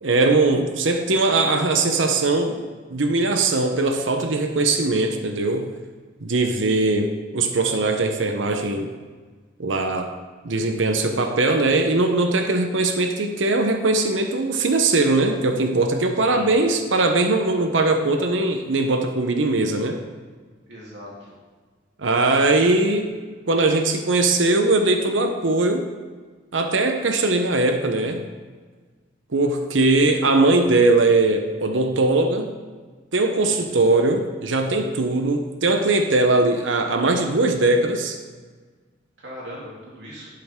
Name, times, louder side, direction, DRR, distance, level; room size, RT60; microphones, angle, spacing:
voice 1, 0.0-2.6 2.9-5.7 6.2-8.9 9.6-10.1 10.4-20.0 22.0-23.1 23.5-25.8 26.5-28.3 29.3-32.5 33.1-38.2, right 2 dB, 90° right, 6 dB, 0.9 m, -20 dB
voice 2, 6.7-7.2 16.2-16.6 20.7-21.3 33.3-33.8 39.2-40.3, equal, 70° right, -5 dB, 3.3 m, -40 dB
12.0 x 7.6 x 3.7 m, 1.4 s
head